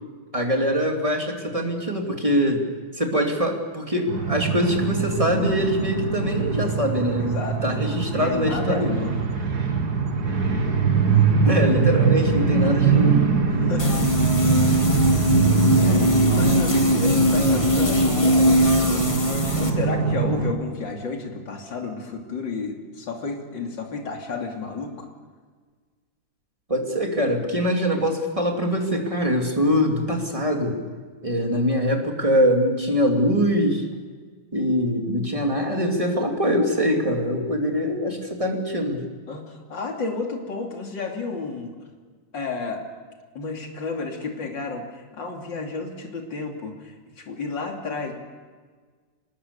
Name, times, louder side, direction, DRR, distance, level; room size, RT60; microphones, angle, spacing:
voice 1, 0.3-2.6 2.9-7.4 7.6-8.9 11.4-13.3 26.7-30.8 31.2-33.8 34.5-39.0, equal, 15° right, 2 dB, 2.9 m, -23 dB
sound 1, 4.1-20.5, right 5 dB, 50° right, 2.4 m, -23 dB
voice 2, 7.3-7.8 8.1-9.1 13.6-14.1 14.7-14.9 15.6-19.3 19.5-25.1 39.3-41.7 42.3-42.8 43.4-48.1, left 4 dB, 55° left, 2 dB, 3.6 m, -32 dB
sound 2, 13.8-19.7, left 1 dB, 15° left, 1.8 m, -21 dB
25.0 x 20.5 x 7.0 m, 1.5 s
omnidirectional pair, 2.4 m